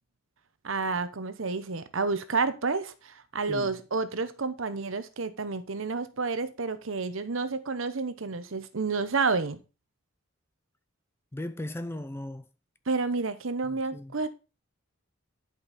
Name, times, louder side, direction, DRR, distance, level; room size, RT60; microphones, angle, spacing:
voice 1, 0.6-9.6 12.9-14.3, right 4 dB, 70° right, 0.9 m, -30 dB
voice 2, 11.3-12.5 13.6-14.1, left 1 dB, 10° left, 0.4 m, -37 dB
11.0 x 5.4 x 4.1 m
head